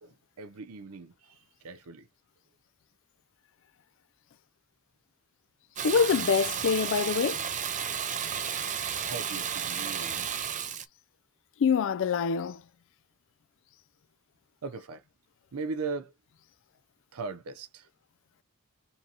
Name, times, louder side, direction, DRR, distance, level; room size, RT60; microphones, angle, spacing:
voice 1, 0.0-2.1 7.9-8.4 9.0-10.3 14.6-15.0 15.5-16.1 17.1-17.9, right 4 dB, 80° right, 0.6 m, -39 dB
voice 2, 5.8-7.4 11.6-12.6, left 6 dB, 60° left, 0.4 m, -25 dB
Water tap faucet / Bathtub (filling or washing), 5.8-10.9, right 8 dB, 35° right, 0.6 m, -33 dB
5.5 x 2.8 x 2.8 m
head